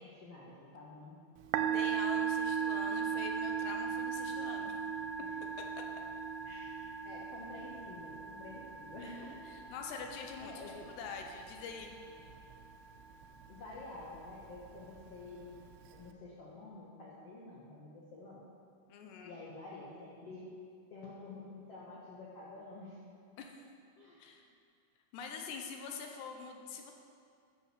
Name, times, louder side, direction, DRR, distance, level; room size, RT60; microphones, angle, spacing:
voice 1, 0.2-1.2 5.2-5.3 6.4-6.7 7.0-9.3 9.8-9.9 10.4-11.0 13.5-15.6 15.9-18.4 19.2-20.5 20.9-23.0 23.9-24.3, left 2 dB, 65° left, -5 dB, 1.5 m, -49 dB
Musical instrument, 1.4-16.1, right 7 dB, 85° right, 2.6 m, -38 dB
voice 2, 1.6-4.7 9.5-10.5 10.9-12.0 18.9-19.4 23.4-23.7 24.2-24.4 25.1-26.9, left 5 dB, 80° left, 3 dB, 3.2 m, -45 dB
11.0 x 7.0 x 6.9 m, 2.4 s
omnidirectional pair, 4.8 m